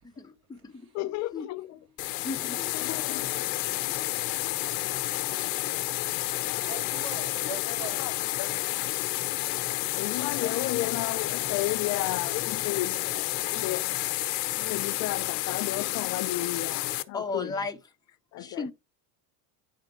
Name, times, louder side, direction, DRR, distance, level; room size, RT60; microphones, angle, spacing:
voice 1, 0.2-0.9 1.3-1.5 2.2-2.7 3.3-3.4 17.1-17.8 18.4-18.7, left 3 dB, 10° left, 1.0 m, -36 dB
voice 2, 0.9-1.8 2.7-3.3 4.1-4.2 7.6-8.9 9.5-9.6 9.9-13.9 14.5-17.5 18.3-18.7, left 16 dB, 35° left, 0.5 m, -34 dB
sound 1, 2.0-17.0, left 18 dB, 70° left, 1.0 m, -30 dB
voice 3, 3.6-4.0 4.3-4.5 4.9-5.1 5.6-5.8 6.5-8.1 9.2-9.4 10.2-10.7 13.4-14.1, right 6 dB, 45° right, 3.0 m, -44 dB
9.9 x 3.7 x 4.4 m
supercardioid pair, 130°, 50 cm